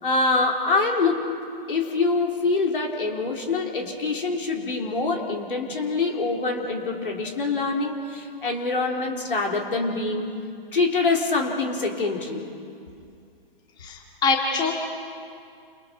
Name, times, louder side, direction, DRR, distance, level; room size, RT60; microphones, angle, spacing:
voice 1, 0.0-1.2 1.7-10.3 10.7-12.4, left 3 dB, 65° left, 1 dB, 4.0 m, -25 dB
voice 2, 13.8-14.7, left 4 dB, 15° left, 0 dB, 2.4 m, -24 dB
30.0 x 28.0 x 5.4 m, 2.4 s
figure-of-eight pair, 125°, 29 cm